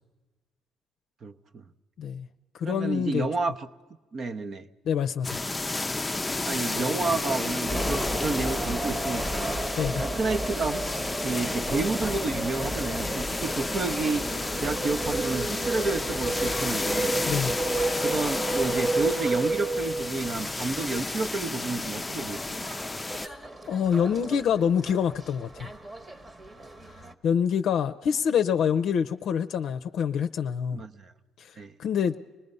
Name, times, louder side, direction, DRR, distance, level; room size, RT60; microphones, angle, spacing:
voice 1, 1.2-1.6 2.6-3.7 4.1-4.7 6.4-9.6 10.0-17.1 18.0-22.7 30.7-31.1 31.6-31.7, right 3 dB, 50° right, 9 dB, 0.9 m, -30 dB
voice 2, 2.5-3.3 4.9-5.4 9.8-10.0 17.2-17.6 23.1-23.4 23.7-25.7 27.2-30.8 31.4-31.5 31.8-32.2, left 7 dB, 70° left, 8 dB, 0.5 m, -26 dB
sound 1, 5.2-23.3, left 2 dB, 15° left, 0.5 m, -32 dB
sound 2, 7.7-27.1, right 2 dB, 25° right, 1.2 m, -32 dB
25.5 x 19.5 x 5.4 m, 1.2 s
cardioid pair, 85°, 0 cm